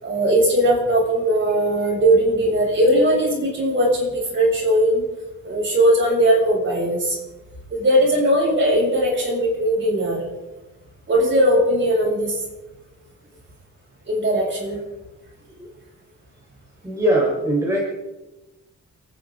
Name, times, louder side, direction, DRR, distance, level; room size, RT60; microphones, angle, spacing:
voice 1, 0.0-5.0 5.4-7.2 7.7-10.3 11.1-12.4 14.1-14.8, right 1 dB, 40° right, -3 dB, 7.4 m, -19 dB
voice 2, 16.8-17.8, right 1 dB, 10° right, -4 dB, 4.9 m, -21 dB
29.5 x 10.5 x 3.9 m, 1.1 s
wide cardioid pair, 120°, 30 cm